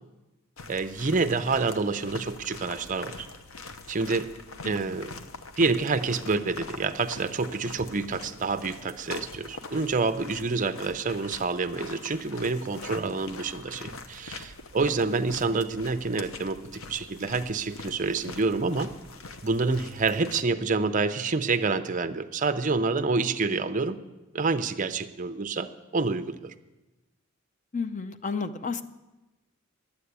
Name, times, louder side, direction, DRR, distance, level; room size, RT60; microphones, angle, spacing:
sound 1, 0.6-20.4, left 3 dB, 75° left, 0.8 m, -43 dB
voice 1, 0.7-3.3 3.9-4.3 4.6-5.1 5.6-18.9 19.4-24.0 24.3-26.5, right 4 dB, 40° right, 11 dB, 0.6 m, -28 dB
voice 2, 4.6-5.0 15.4-15.6 23.4-23.6 27.7-28.8, left 4 dB, 35° left, 11 dB, 0.6 m, -33 dB
11.5 x 8.6 x 8.2 m, 1.1 s
head